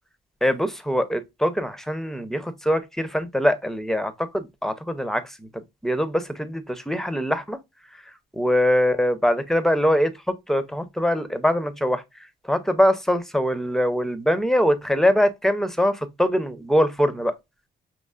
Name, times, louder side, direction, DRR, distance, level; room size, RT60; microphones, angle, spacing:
voice 1, 0.4-5.5 5.8-7.6 8.3-10.1 10.5-12.0 12.4-17.3, equal, ahead, 0.6 m, -23 dB
5.4 x 2.9 x 2.3 m
cardioid pair, 90°, 20 cm